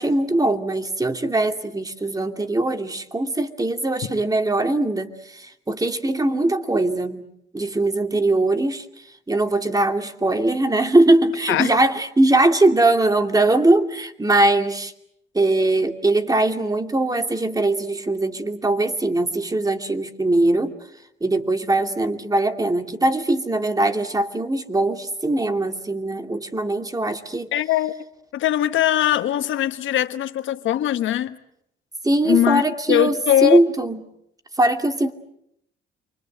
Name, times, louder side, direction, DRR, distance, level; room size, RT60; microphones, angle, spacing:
voice 1, 0.0-7.2 7.5-8.9 9.3-14.9 15.3-20.7 21.2-27.5 32.0-33.1 33.4-34.0 34.6-35.1, right 2 dB, 20° right, 2.7 m, -21 dB
voice 2, 27.5-27.9 28.3-31.4 32.2-32.6 32.9-33.6, left 12 dB, 80° left, 1.4 m, -20 dB
29.0 x 24.5 x 8.0 m
cardioid pair, 90°, 20 cm